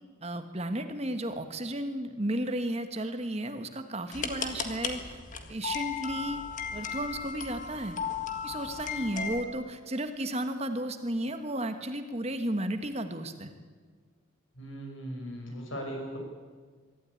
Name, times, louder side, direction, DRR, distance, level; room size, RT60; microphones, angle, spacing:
voice 1, 0.2-5.2 5.5-6.4 6.7-8.0 8.4-13.5, right 1 dB, 30° right, 8 dB, 1.3 m, -33 dB
sound 1, 4.1-9.4, left 6 dB, 40° left, 1.8 m, -36 dB
voice 2, 14.5-16.2, equal, 75° left, 2 dB, 6.3 m, -38 dB
23.0 x 13.5 x 9.8 m, 1.5 s
head